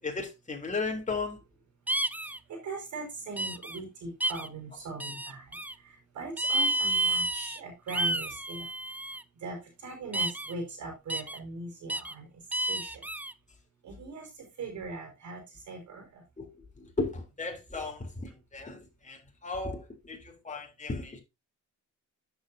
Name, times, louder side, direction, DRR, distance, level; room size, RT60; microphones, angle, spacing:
voice 1, 0.0-1.4 16.4-16.5 16.8-21.2, left 3 dB, 25° left, 3.5 m, -35 dB
sound 1, 1.9-2.4 3.4-3.8 4.2-4.5 5.0-5.7 6.4-7.6 7.9-9.2 10.1-10.5 11.1-11.4 11.9-12.1 12.5-13.3, right 1 dB, 5° right, 0.6 m, -30 dB
voice 2, 2.5-5.4 6.2-8.7 9.4-9.6 9.8-12.3 12.7-13.0 13.8-14.3 14.6-15.4 15.7-16.2, right 3 dB, 70° right, 5.1 m, -40 dB
9.9 x 7.9 x 2.8 m
cardioid pair, 90°, 30 cm